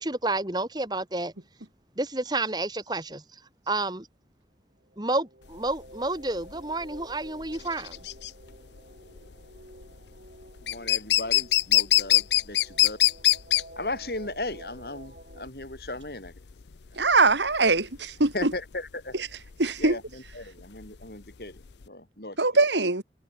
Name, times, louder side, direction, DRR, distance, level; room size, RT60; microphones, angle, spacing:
voice 1, 0.0-1.3 2.0-3.4 3.7-4.1 5.0-8.0, right 2 dB, 25° right, 2.2 m, -30 dB
sound 1, 4.8-15.5, right 1 dB, 55° right, 5.8 m, -51 dB
sound 2, 5.5-21.9, left 16 dB, 80° left, 0.6 m, -26 dB
voice 2, 10.6-13.0 13.8-16.4 16.9-17.1 18.2-19.1 19.8-22.6, left 2 dB, 60° left, 7.9 m, -37 dB
voice 3, 17.0-18.5 19.6-20.0 22.4-23.0, right 3 dB, 90° right, 2.9 m, -22 dB
head